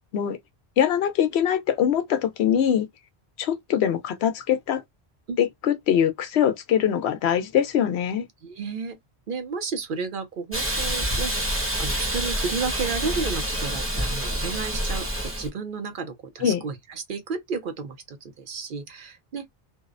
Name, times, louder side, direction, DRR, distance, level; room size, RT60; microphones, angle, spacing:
voice 1, 0.8-2.9 3.4-4.8 5.4-8.3 16.4-16.6, left 9 dB, 80° left, 0.8 m, -23 dB
voice 2, 8.4-9.0 9.3-19.5, right 5 dB, 60° right, 0.7 m, -32 dB
Hiss, 10.5-15.5, equal, 15° right, 0.8 m, -27 dB
2.6 x 2.0 x 2.4 m
omnidirectional pair, 1.1 m